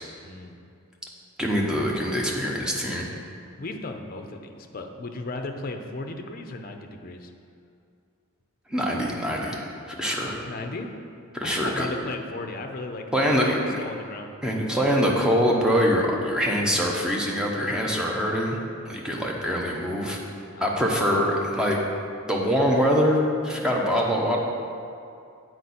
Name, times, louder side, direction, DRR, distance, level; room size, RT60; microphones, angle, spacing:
voice 1, 0.2-0.6 3.6-7.3 10.4-10.9 11.4-13.5 13.8-14.3 20.5-20.8, left 2 dB, 45° left, 5 dB, 0.5 m, -36 dB
voice 2, 1.4-3.1 8.7-10.4 11.3-11.9 13.1-13.6 14.4-18.6 18.9-20.2 20.6-21.8 22.3-24.4, equal, 5° right, -2 dB, 0.7 m, -24 dB
7.9 x 4.6 x 4.2 m, 2.4 s
head